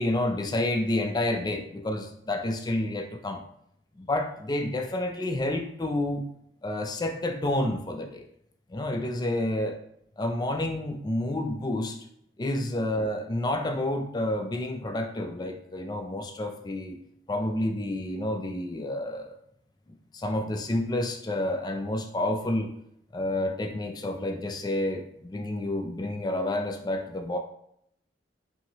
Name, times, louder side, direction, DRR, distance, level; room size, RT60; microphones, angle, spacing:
voice 1, 0.0-3.4 4.0-6.3 6.6-8.2 8.7-9.8 10.2-12.0 12.4-17.0 17.3-19.3 19.9-22.7 23.1-27.4, left 1 dB, 20° left, 5 dB, 0.3 m, -29 dB
5.6 x 2.7 x 2.9 m, 0.73 s
head